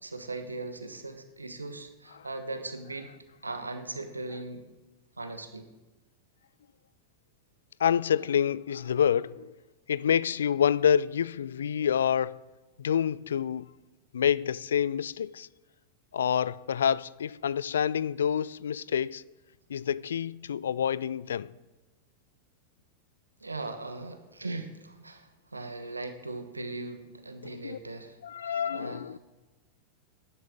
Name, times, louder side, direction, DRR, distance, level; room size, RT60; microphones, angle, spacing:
voice 1, 0.0-3.1 3.4-4.7 5.2-5.7 23.4-28.2 28.4-29.2, right 2 dB, 80° right, 1.2 m, -39 dB
voice 2, 7.8-9.5 9.9-12.4 12.8-13.7 14.1-15.5 16.1-19.2 19.7-21.5 27.4-27.8 28.2-29.2, left 8 dB, 65° left, 0.3 m, -27 dB
20.5 x 11.0 x 3.7 m
figure-of-eight pair, 90°, 0 cm